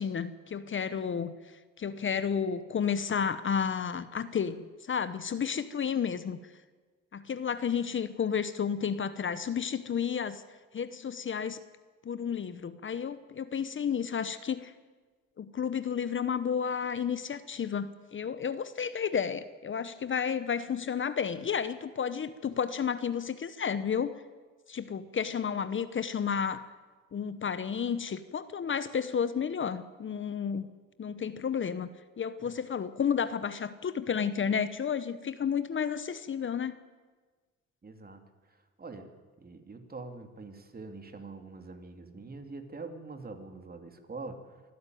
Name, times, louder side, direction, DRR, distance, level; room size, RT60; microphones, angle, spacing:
voice 1, 0.0-1.3 1.8-6.4 7.1-10.4 10.7-11.6 12.0-14.7 15.4-24.1 24.7-26.6 27.1-30.7 31.0-31.9 32.2-36.7, left 7 dB, 40° left, 13 dB, 1.0 m, -31 dB
voice 2, 37.8-39.1 39.4-44.6, right 3 dB, 30° right, 6 dB, 2.7 m, -44 dB
24.5 x 12.5 x 9.3 m, 1.4 s
cardioid pair, 90°, 30 cm